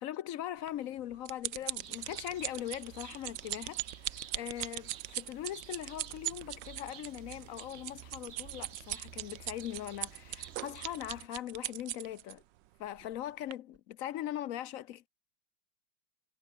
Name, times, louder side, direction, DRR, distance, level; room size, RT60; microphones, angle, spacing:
voice 1, 0.0-12.4 12.8-15.1, left 12 dB, 70° left, 0.8 m, -40 dB
sound 1, 0.7-12.3 13.0-13.2 13.5-13.6, right 15 dB, 75° right, 1.3 m, -39 dB
sound 2, 1.8-11.3, right 9 dB, 55° right, 0.7 m, -52 dB
sound 3, 5.8-6.2 6.5-8.4 8.9-9.3 9.9-10.6 11.0-11.1 11.5-11.6 12.0-12.6 12.8-13.4 13.7-14.1, equal, 5° left, 4.8 m, -68 dB
omnidirectional pair, 2.1 m